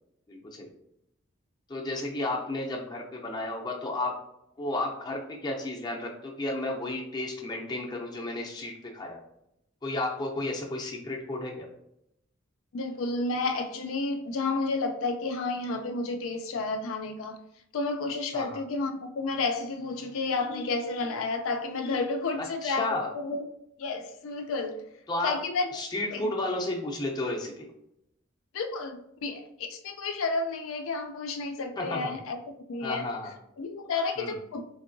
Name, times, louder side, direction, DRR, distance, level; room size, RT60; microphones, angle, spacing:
voice 1, 0.3-0.7 1.7-4.1 4.6-9.2 9.8-11.7 18.3-18.6 22.4-23.1 25.1-25.3 25.7-27.7 31.8-32.1 32.8-33.3 34.2-34.4, left 2 dB, 20° left, -1 dB, 0.5 m, -32 dB
voice 2, 12.7-17.4 17.7-23.5 23.8-24.9 25.2-25.7 26.1-26.3 28.5-33.2 33.6-34.6, left 3 dB, 75° left, 6 dB, 0.4 m, -31 dB
3.6 x 3.2 x 2.5 m, 0.79 s
head